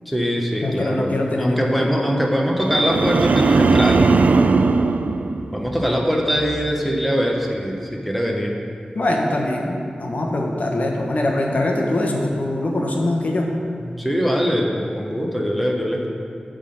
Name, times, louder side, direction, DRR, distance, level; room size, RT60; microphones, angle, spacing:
voice 1, 0.1-4.1 5.5-8.6 13.8-16.1, equal, ahead, 0 dB, 0.9 m, -22 dB
voice 2, 0.6-2.1 8.9-13.4, left 1 dB, 65° left, 0 dB, 1.1 m, -23 dB
sound 1, 2.6-6.0 6.4-6.8, right 4 dB, 70° right, 0.3 m, -18 dB
9.8 x 3.8 x 6.5 m, 2.4 s
wide cardioid pair, 70°, 3 cm